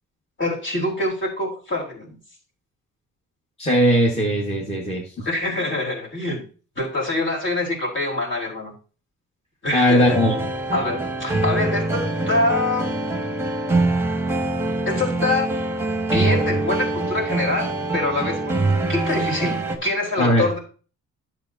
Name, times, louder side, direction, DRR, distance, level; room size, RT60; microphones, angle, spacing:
voice 1, 0.4-2.2 5.2-6.4 6.8-8.7 9.6-10.2 10.7-13.0 14.8-15.5 16.1-18.6 18.9-20.6, left 2 dB, 40° left, -2 dB, 3.4 m, -25 dB
voice 2, 3.6-5.0 9.7-10.3 20.2-20.5, equal, 20° left, -2 dB, 1.8 m, -18 dB
sound 1, 10.0-19.8, right 2 dB, 10° right, 1.4 m, -24 dB
10.0 x 7.4 x 2.8 m, 0.37 s
cardioid pair, 90°, 30 cm